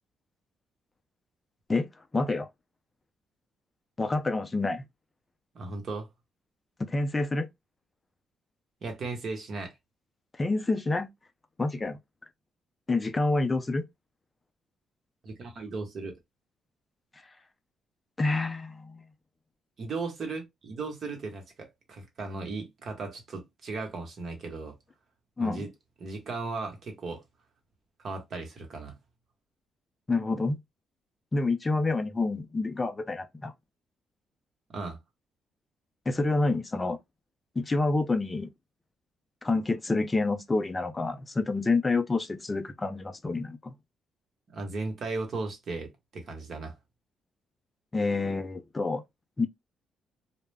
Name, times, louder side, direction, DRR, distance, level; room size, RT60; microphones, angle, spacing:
voice 1, 1.7-2.5 4.0-4.9 6.8-7.5 10.4-11.1 11.6-12.0 12.9-13.8 18.2-19.0 25.4-25.7 30.1-30.6 31.3-33.5 36.1-37.0 37.6-38.5 39.4-43.8 47.9-49.0 49.4-49.5, left 3 dB, 25° left, 0.4 m, -28 dB
voice 2, 5.5-6.1 8.8-9.7 15.2-16.2 19.8-24.7 25.4-25.7 26.0-27.2 28.0-29.0 34.7-35.0 44.5-46.8, right 3 dB, 55° right, 1.0 m, -36 dB
2.3 x 2.1 x 3.3 m
cardioid pair, 90°, 0 cm